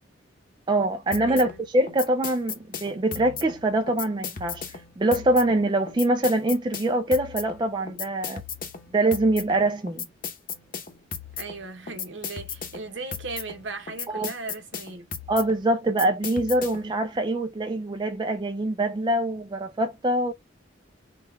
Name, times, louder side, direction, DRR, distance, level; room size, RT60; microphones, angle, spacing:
voice 1, 0.7-8.4 8.9-10.0 14.1-14.3 15.3-20.3, right 1 dB, 25° right, 0.3 m, -24 dB
sound 1, 1.1-17.0, left 6 dB, 45° left, 0.8 m, -37 dB
voice 2, 1.3-1.6 11.4-15.1, right 3 dB, 70° right, 1.0 m, -37 dB
3.7 x 2.3 x 4.2 m
head